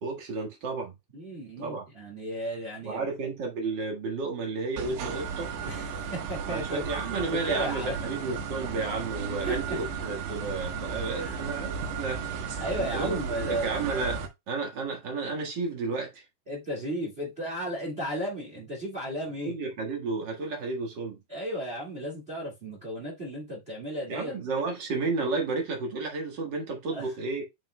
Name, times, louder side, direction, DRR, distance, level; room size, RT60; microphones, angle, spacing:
voice 1, 0.0-0.9 1.6-1.8 2.8-5.5 6.5-12.6 12.9-16.2 19.4-21.2 24.1-27.4, right 3 dB, 65° right, 1.1 m, -32 dB
voice 2, 1.1-3.0 5.6-6.8 7.3-8.0 9.4-9.8 11.2-11.4 12.6-13.7 16.5-19.5 21.3-24.4 26.9-27.1, equal, 50° right, 0.7 m, -34 dB
sound 1, 4.8-14.3, right 6 dB, 90° right, 3.4 m, -34 dB
8.6 x 5.8 x 2.2 m
omnidirectional pair, 4.6 m